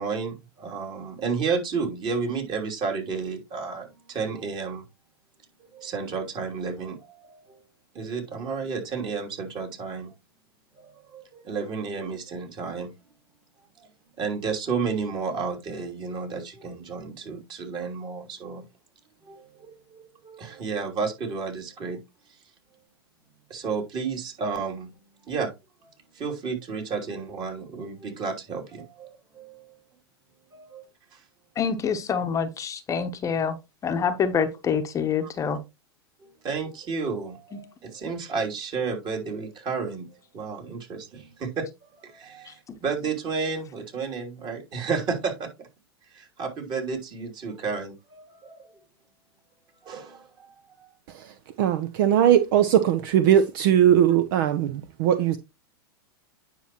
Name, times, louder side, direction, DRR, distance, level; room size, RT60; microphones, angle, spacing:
voice 1, 0.0-4.8 5.7-7.6 7.9-10.1 10.8-12.9 13.8-13.9 14.2-18.6 19.2-22.0 23.5-24.9 25.2-25.5 26.1-29.8 30.5-30.9 31.1-31.2 35.2-35.3 36.2-40.1 40.3-45.7 46.1-48.7 49.8-50.9, right 5 dB, 35° right, 2.9 m, -32 dB
voice 2, 31.6-33.6 33.8-35.6 42.5-42.6, left 6 dB, 25° left, 0.9 m, -26 dB
voice 3, 51.1-55.4, right 10 dB, 55° right, 0.7 m, -20 dB
9.5 x 5.8 x 3.0 m
hypercardioid pair, 100°, 13 cm